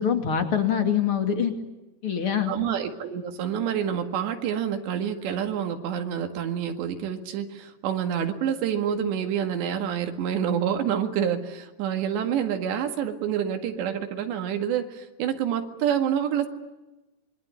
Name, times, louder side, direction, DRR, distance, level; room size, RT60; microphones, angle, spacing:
voice 1, 0.0-1.5 2.0-2.5, left 8 dB, 40° left, 6 dB, 2.7 m, -24 dB
voice 2, 2.5-16.5, right 9 dB, 85° right, 6 dB, 4.2 m, -27 dB
26.0 x 22.5 x 9.7 m, 1.1 s
omnidirectional pair, 4.8 m